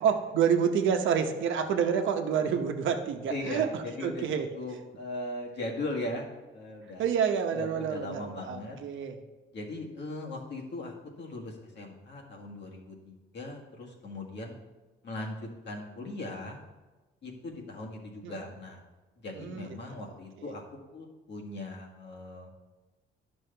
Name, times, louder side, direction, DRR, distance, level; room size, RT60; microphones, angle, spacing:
voice 1, 0.0-4.5 7.0-9.2 18.2-18.3 19.3-20.1, right 7 dB, 75° right, 5 dB, 0.8 m, -28 dB
voice 2, 3.3-4.3 4.5-7.0 7.5-8.8 9.5-14.5 15.0-16.6 17.2-18.8 19.2-22.5, left 2 dB, 60° left, 0 dB, 1.7 m, -39 dB
10.0 x 6.2 x 3.4 m, 1.2 s
cardioid pair, 90°, 20 cm